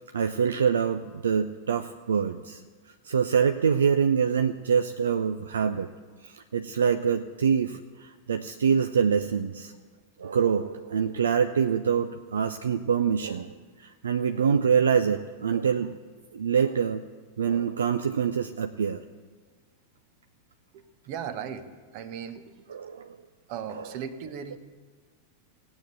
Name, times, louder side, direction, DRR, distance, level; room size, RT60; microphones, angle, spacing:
voice 1, 0.1-2.6 3.0-5.9 6.2-9.7 10.2-13.5 13.8-15.9 16.3-17.0 17.4-19.0 22.7-23.1 23.8-23.9, right 7 dB, 70° right, 8 dB, 0.5 m, -25 dB
voice 2, 20.7-22.7 23.5-24.6, right 8 dB, 45° right, 11 dB, 1.1 m, -37 dB
16.5 x 8.9 x 7.9 m, 1.5 s
figure-of-eight pair, 90°, 0 cm